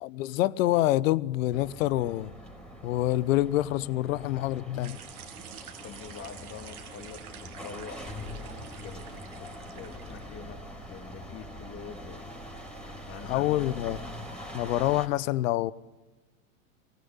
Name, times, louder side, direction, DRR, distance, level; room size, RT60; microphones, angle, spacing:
voice 1, 0.0-2.3 2.8-5.0 13.2-14.0 14.5-15.7, left 15 dB, 65° left, 0.9 m, -26 dB
sound 1, 1.5-15.1, equal, ahead, 5.0 m, -43 dB
sound 2, 4.8-10.4, right 9 dB, 85° right, 2.2 m, -48 dB
voice 2, 5.8-12.3 13.1-13.8, left 6 dB, 30° left, 2.7 m, -46 dB
23.5 x 18.5 x 9.6 m
hypercardioid pair, 110°, 43 cm